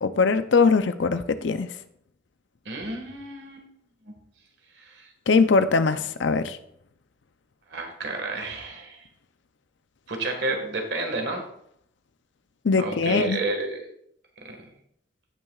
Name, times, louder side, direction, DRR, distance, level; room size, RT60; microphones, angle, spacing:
voice 1, 0.0-1.7 5.3-6.6 12.6-13.4, left 4 dB, 70° left, 11 dB, 0.5 m, -21 dB
voice 2, 2.6-3.6 4.1-4.2 4.8-5.1 7.7-9.0 10.1-11.4 12.8-13.8 14.4-14.7, right 2 dB, 60° right, 3 dB, 1.7 m, -31 dB
15.5 x 5.9 x 2.4 m, 0.70 s
head